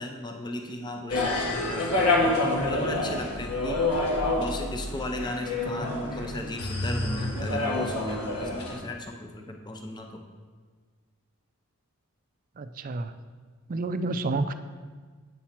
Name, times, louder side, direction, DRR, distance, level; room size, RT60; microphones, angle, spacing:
voice 1, 0.0-2.3 2.7-3.8 4.4-10.2, left 1 dB, 20° left, 3 dB, 0.6 m, -36 dB
sound 1, 1.1-8.8, left 2 dB, 75° left, 1.5 m, -27 dB
voice 2, 12.6-13.2 13.7-14.5, right 3 dB, 40° right, 11 dB, 0.4 m, -29 dB
8.6 x 4.3 x 5.8 m, 1.5 s
head